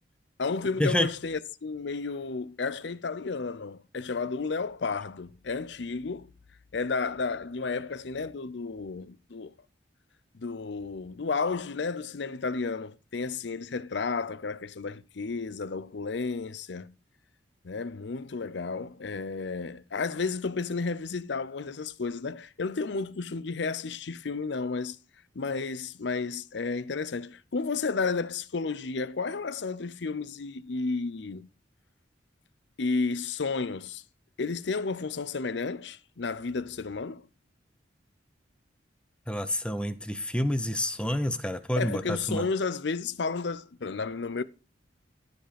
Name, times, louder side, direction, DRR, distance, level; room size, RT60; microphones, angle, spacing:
voice 1, 0.4-6.3 6.7-9.5 10.3-16.9 17.6-25.0 25.3-31.5 32.8-34.0 34.4-37.3 41.7-44.4, left 4 dB, 70° left, 0.6 m, -32 dB
voice 2, 39.3-42.4, left 1 dB, 5° left, 0.7 m, -28 dB
13.5 x 5.0 x 5.0 m
head